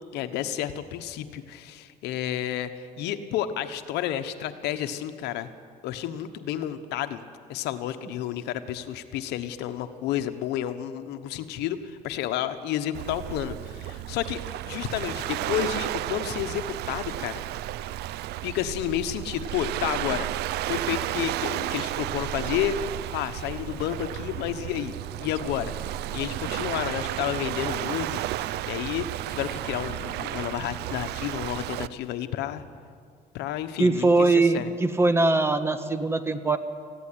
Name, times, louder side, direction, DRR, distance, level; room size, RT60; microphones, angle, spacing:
voice 1, 0.1-5.5 5.8-7.2 7.5-17.4 18.4-20.3 20.7-22.8 23.1-25.7 26.1-32.7 33.3-34.7, left 11 dB, 90° left, 10 dB, 1.1 m, -31 dB
Waves surf, 12.9-31.9, right 14 dB, 75° right, 0.5 m, -32 dB
voice 2, 33.8-36.6, right 3 dB, 15° right, 10 dB, 1.3 m, -21 dB
19.0 x 15.5 x 9.9 m, 2.1 s
cardioid pair, 110°, 17 cm